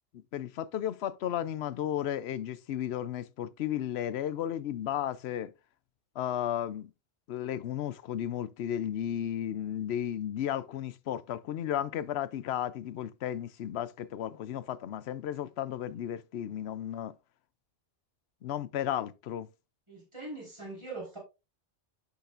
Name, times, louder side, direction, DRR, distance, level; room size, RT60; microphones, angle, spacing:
voice 1, 0.1-5.5 6.2-6.9 7.3-17.1 18.4-19.5, left 10 dB, 70° left, 0.9 m, -34 dB
voice 2, 19.9-21.2, right 2 dB, 25° right, 4.6 m, -41 dB
10.5 x 6.6 x 2.5 m
omnidirectional pair, 1.2 m